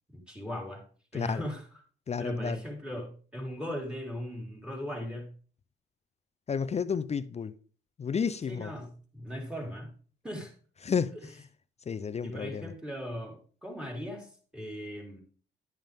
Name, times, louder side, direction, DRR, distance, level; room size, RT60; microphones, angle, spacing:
voice 1, 0.1-0.8 1.1-1.6 2.2-5.3 8.5-9.9 10.2-10.5 11.1-11.2 12.2-15.2, equal, 5° right, 3.9 m, -38 dB
voice 2, 2.1-2.6 6.5-7.5 8.0-8.7 10.8-11.1 11.9-12.7, left 6 dB, 35° left, 0.5 m, -31 dB
11.0 x 9.0 x 3.5 m
cardioid pair, 90°, 20 cm